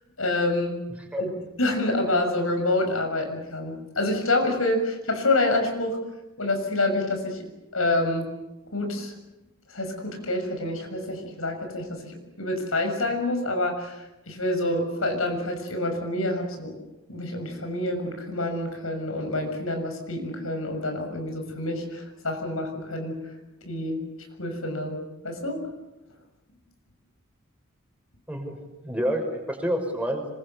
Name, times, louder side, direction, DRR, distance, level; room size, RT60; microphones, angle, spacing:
voice 1, 0.2-0.8 1.2-1.3 1.6-6.0 6.4-7.4 7.7-8.3 8.7-9.1 9.7-16.8 17.1-23.2 23.6-24.0 24.4-25.0 25.2-25.6, left 2 dB, 80° left, 4 dB, 6.9 m, -27 dB
voice 2, 28.3-30.3, equal, 5° right, 3 dB, 6.0 m, -29 dB
26.5 x 24.0 x 8.3 m, 0.99 s
head